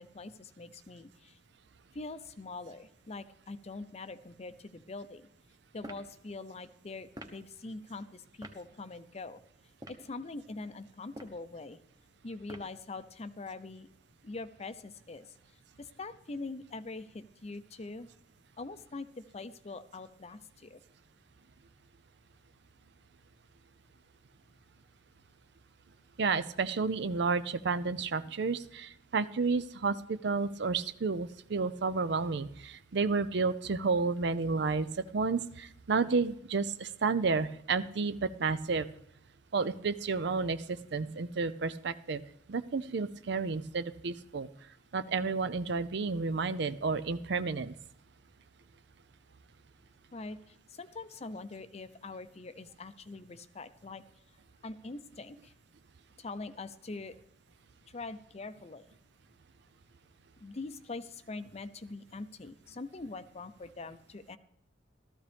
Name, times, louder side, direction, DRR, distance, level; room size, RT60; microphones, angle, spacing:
voice 1, 0.0-1.4 1.9-5.3 5.7-9.4 9.9-11.8 12.2-13.9 14.2-15.3 15.8-18.1 18.6-20.8 50.1-54.0 54.6-55.5 56.2-57.2 57.9-58.9 60.4-64.4, left 3 dB, 35° left, 12 dB, 0.6 m, -43 dB
sound 1, 5.8-6.1 7.1-7.4 8.4-8.6 9.7-10.1 11.0-11.4 12.5-12.8, right 1 dB, 20° right, 1.1 m, -46 dB
voice 2, 26.2-38.9 39.5-42.2 42.5-44.5 44.9-47.7, right 4 dB, 65° right, 13 dB, 0.6 m, -31 dB
14.5 x 13.5 x 3.5 m, 0.75 s
head